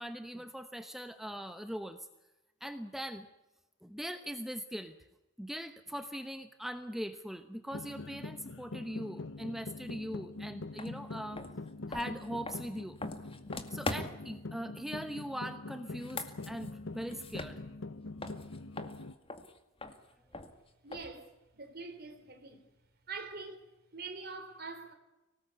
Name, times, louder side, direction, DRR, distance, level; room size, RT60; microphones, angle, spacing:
voice 1, 0.0-2.1 2.6-3.3 3.8-5.0 5.4-11.4 11.9-13.0 13.7-17.6, equal, ahead, 1.0 m, -41 dB
sound 1, 7.7-19.1, left 2 dB, 65° left, 0.9 m, -44 dB
sound 2, 10.8-10.9 11.3-14.4 15.9-17.9 18.2-21.3, left 2 dB, 25° left, 2.1 m, -42 dB
voice 2, 20.8-22.6 23.1-23.6 23.9-24.9, right 4 dB, 50° right, 3.9 m, -44 dB
25.0 x 18.5 x 9.6 m
head